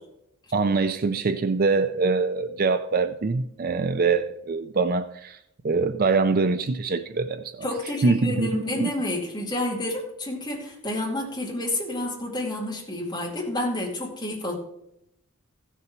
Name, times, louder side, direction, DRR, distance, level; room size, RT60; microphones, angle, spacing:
voice 1, 0.5-5.4 5.6-7.7 8.0-8.9, right 4 dB, 40° right, 0.4 m, -24 dB
voice 2, 7.6-14.5, left 1 dB, 20° left, 2.3 m, -29 dB
15.0 x 6.8 x 4.4 m
head